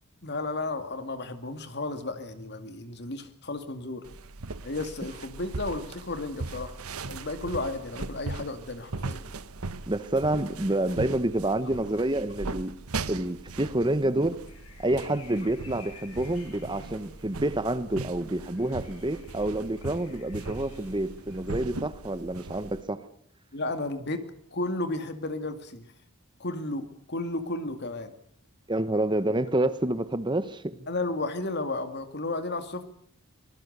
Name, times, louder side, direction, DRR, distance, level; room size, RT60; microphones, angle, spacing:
voice 1, 0.2-4.0 4.6-6.7 7.0-9.2 23.5-24.2 24.5-25.9 26.4-28.1 30.9-32.8, left 2 dB, 50° left, 8 dB, 2.3 m, -33 dB
sound 1, 4.0-22.8, right 3 dB, 80° right, 1.1 m, -39 dB
voice 2, 9.9-12.7 13.1-14.4 14.8-23.0 28.7-30.6, right 1 dB, 20° right, 13 dB, 1.0 m, -28 dB
sound 2, 14.5-21.6, left 4 dB, 75° left, 5.4 m, -53 dB
25.0 x 20.0 x 6.8 m, 0.65 s
head